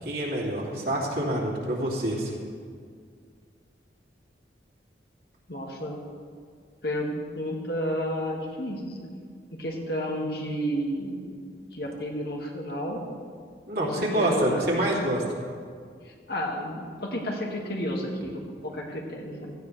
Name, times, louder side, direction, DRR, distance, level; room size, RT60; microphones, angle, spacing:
voice 1, 0.0-2.3 13.7-15.4, right 1 dB, 55° right, -4 dB, 2.9 m, -27 dB
voice 2, 5.5-6.0 6.8-9.0 9.5-11.4 11.7-13.0 13.8-14.6 16.0-19.5, equal, 60° left, -1 dB, 2.1 m, -31 dB
17.0 x 14.5 x 3.4 m, 2.1 s
head